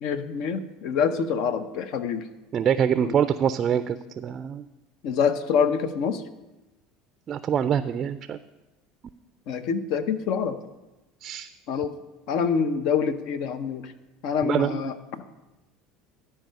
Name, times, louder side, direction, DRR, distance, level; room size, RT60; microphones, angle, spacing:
voice 1, 0.0-2.3 3.0-3.2 5.0-6.2 9.5-10.6 11.7-11.9 12.3-13.9 14.2-15.3, left 6 dB, 65° left, 11 dB, 0.7 m, -26 dB
voice 2, 2.5-4.6 7.3-8.4 11.2-11.5 14.4-14.8, right 8 dB, 40° right, 12 dB, 0.4 m, -25 dB
12.5 x 4.7 x 6.4 m, 1.0 s
supercardioid pair, 95°, 0 cm